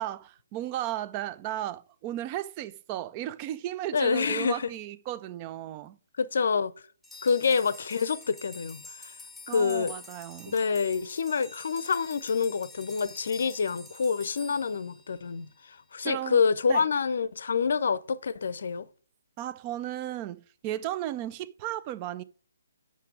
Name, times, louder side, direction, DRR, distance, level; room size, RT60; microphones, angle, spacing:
voice 1, 0.0-6.0 9.5-10.6 16.0-16.4 16.7-16.8 19.4-22.2, right 13 dB, 25° right, 0.5 m, -35 dB
voice 2, 3.9-4.7 6.2-6.7 7.2-9.1 9.5-9.9 10.5-15.5 15.9-18.9, left 5 dB, 55° left, 0.6 m, -27 dB
sound 1, 7.0-15.6, left 3 dB, 5° left, 0.8 m, -48 dB
8.3 x 6.0 x 4.9 m
figure-of-eight pair, 135°, 0 cm